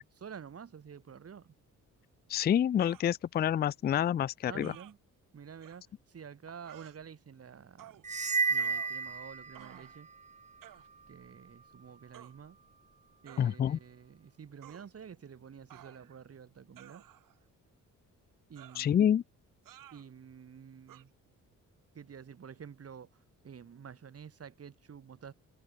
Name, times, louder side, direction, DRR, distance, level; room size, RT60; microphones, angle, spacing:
voice 1, 0.0-1.5 4.5-5.0 5.3-8.0 8.5-10.1 11.1-12.6 13.2-17.0 18.5-19.2 19.9-21.1 21.9-23.1 23.4-25.3, right 7 dB, 50° right, 4.4 m, -49 dB
voice 2, 2.3-4.7 13.4-13.8 18.8-19.2, left 9 dB, 30° left, 0.4 m, -27 dB
sound 1, 2.8-3.1 4.6-4.9 5.6-5.8 6.6-7.0 7.8-8.1 8.6-9.2 9.5-10.0 10.6-10.9 12.1-12.3 13.3-13.5 14.6-14.9 15.7-16.2 16.8-17.4 18.6-18.9 19.7-20.1 20.9-21.0, right 13 dB, 85° right, 4.6 m, -54 dB
sound 2, 8.0-9.9, right 5 dB, 20° right, 0.8 m, -32 dB
cardioid pair, 105°, 32 cm